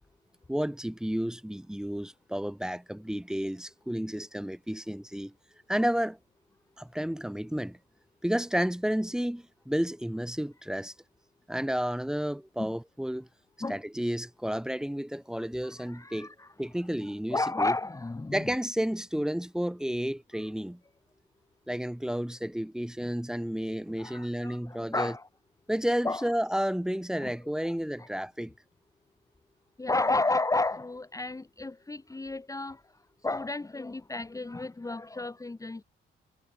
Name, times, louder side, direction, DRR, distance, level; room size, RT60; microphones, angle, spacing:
voice 1, 0.5-5.3 5.7-6.2 6.8-7.8 8.2-10.9 11.5-13.3 13.7-16.3 16.6-17.8 18.3-20.8 21.7-25.2 25.7-28.5, equal, 5° right, 2.1 m, -31 dB
voice 2, 15.8-16.5 17.3-18.5 24.0-25.3 26.0-26.3 27.2-27.3 27.6-28.1 29.8-32.8 33.2-35.8, left 2 dB, 15° left, 1.6 m, -32 dB
cardioid pair, 90°, 20 cm